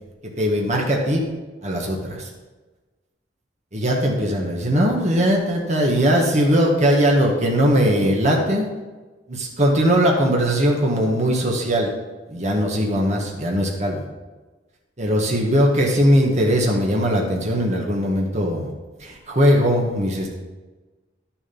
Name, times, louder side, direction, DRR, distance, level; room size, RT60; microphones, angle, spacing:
voice 1, 0.4-1.2 1.6-2.3 3.7-8.7 9.3-11.9 12.3-14.0 15.0-18.7 19.0-20.3, equal, 40° right, -1 dB, 1.8 m, -20 dB
11.5 x 7.4 x 5.5 m, 1.2 s
head